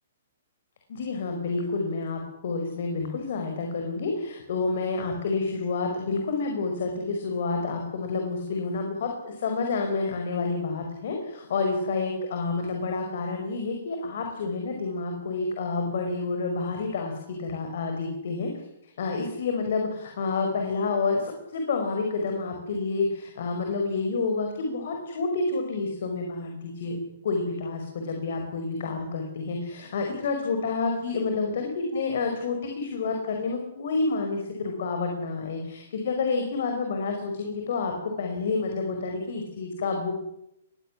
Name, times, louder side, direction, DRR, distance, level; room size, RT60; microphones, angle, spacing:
voice 1, 0.9-18.5 18.8-27.0 27.2-40.1, left 4 dB, 50° left, 3 dB, 5.2 m, -29 dB
21.5 x 17.0 x 10.0 m, 0.83 s
hypercardioid pair, 175°, 0 cm